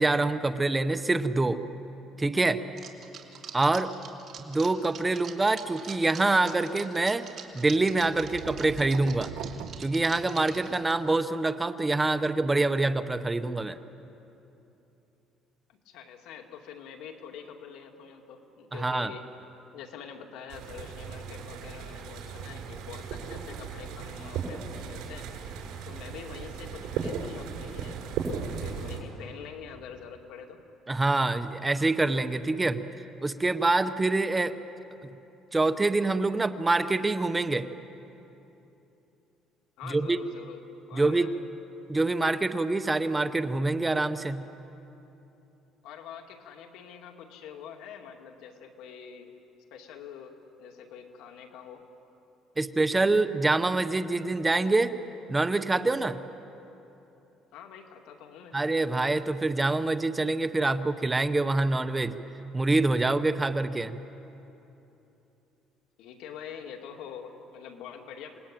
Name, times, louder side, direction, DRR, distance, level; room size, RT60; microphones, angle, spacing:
voice 1, 0.0-1.6 2.2-2.6 3.5-3.9 4.4-7.3 7.5-9.3 9.8-13.8 18.8-19.1 30.9-32.8 33.2-34.5 35.5-37.7 39.9-40.2 40.9-41.3 41.9-44.4 52.6-54.9 55.3-56.2 58.5-62.2 62.5-64.0, right 2 dB, 15° right, 10 dB, 0.8 m, -25 dB
sound 1, 2.8-10.9, right 7 dB, 40° right, 2.6 m, -44 dB
sound 2, 7.8-10.7, right 9 dB, 60° right, 1.1 m, -42 dB
voice 2, 15.7-19.2 19.7-25.3 25.9-28.0 28.3-30.6 39.8-40.6 40.9-41.4 45.8-49.3 49.7-51.8 57.5-58.6 66.0-68.4, left 7 dB, 80° left, 3 dB, 2.5 m, -45 dB
sound 3, 20.5-29.0, right 6 dB, 80° right, 7.0 m, -36 dB
28.0 x 20.0 x 9.1 m, 3.0 s
cardioid pair, 145°, 0 cm